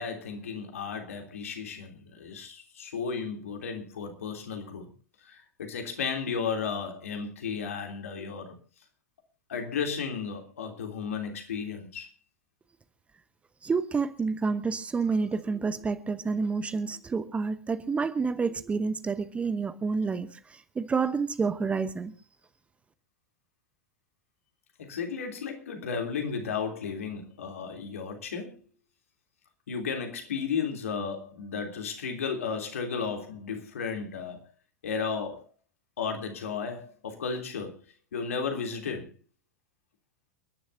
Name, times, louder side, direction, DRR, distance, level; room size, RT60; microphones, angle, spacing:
voice 1, 0.0-4.9 5.2-8.5 9.5-12.1 24.8-28.6 29.7-34.4 34.8-35.4 36.0-37.8 38.1-39.1, left 6 dB, 65° left, 3.3 m, -34 dB
voice 2, 13.6-22.1, right 4 dB, 15° right, 1.0 m, -29 dB
29.5 x 11.0 x 2.7 m
figure-of-eight pair, 90°, 8 cm